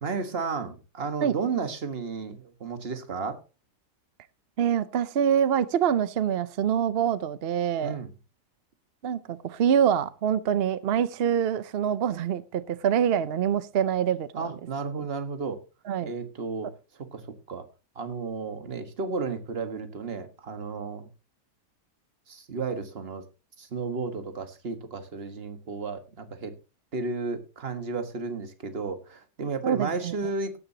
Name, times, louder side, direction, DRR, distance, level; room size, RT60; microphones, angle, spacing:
voice 1, 0.0-3.4 7.8-8.1 14.4-15.6 16.0-16.7 17.1-17.6 17.9-21.1 22.3-23.2 23.6-26.5 26.9-30.6, right 4 dB, 40° right, 1.6 m, -33 dB
voice 2, 4.6-8.0 9.0-14.5 15.9-16.1 29.6-30.2, right 8 dB, 55° right, 0.7 m, -25 dB
17.0 x 9.8 x 2.8 m
omnidirectional pair, 1.7 m